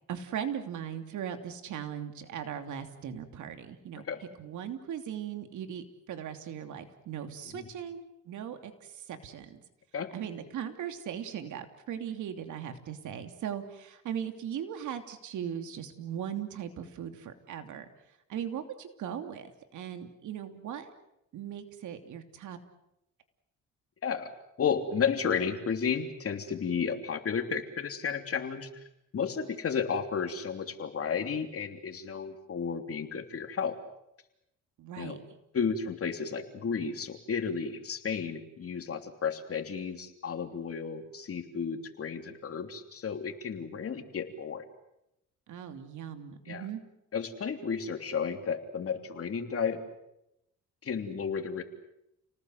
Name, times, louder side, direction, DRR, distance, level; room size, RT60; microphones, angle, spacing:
voice 1, 0.1-4.0 4.4-9.6 10.1-17.8 18.3-20.9 21.3-22.6 34.8-35.2 45.5-46.8, right 9 dB, 80° right, 7 dB, 3.0 m, -38 dB
voice 2, 24.6-28.8 29.1-33.8 35.0-35.2 35.5-44.6 46.4-46.7 47.1-49.8 50.8-51.6, left 6 dB, 50° left, 6 dB, 3.2 m, -33 dB
30.0 x 19.5 x 7.9 m, 0.85 s
cardioid pair, 90°, 30 cm